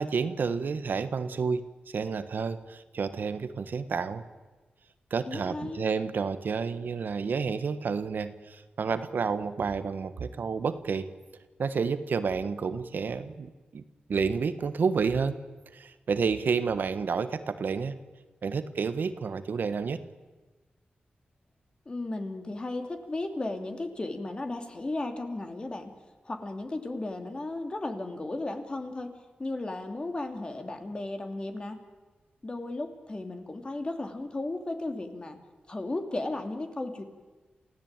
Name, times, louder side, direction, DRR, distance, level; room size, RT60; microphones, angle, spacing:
voice 1, 0.0-4.2 5.1-11.1 11.6-13.8 14.1-15.4 15.7-17.9 18.4-20.0, right 5 dB, 70° right, 11 dB, 1.4 m, -30 dB
voice 2, 5.3-5.9 21.8-25.9 26.2-29.1 29.4-31.8 32.4-35.4 35.7-37.0, left 2 dB, 30° left, 5 dB, 2.9 m, -35 dB
28.5 x 16.0 x 9.1 m, 1.2 s
wide cardioid pair, 110°, 3 cm